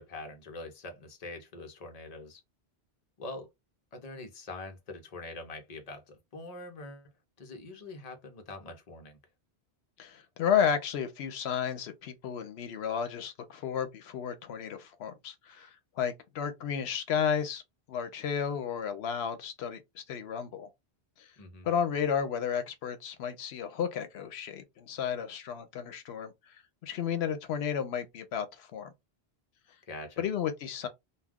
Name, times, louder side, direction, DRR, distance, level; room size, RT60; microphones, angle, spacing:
voice 1, 0.0-2.4 3.2-3.5 3.9-7.1 7.4-9.2 21.4-21.7 29.9-30.3, left 2 dB, 40° left, 0.8 m, -44 dB
voice 2, 10.0-17.6 17.9-20.7 21.2-21.3 21.6-28.9 30.2-30.9, left 7 dB, 85° left, 0.8 m, -32 dB
2.3 x 2.3 x 3.5 m
omnidirectional pair, 1.1 m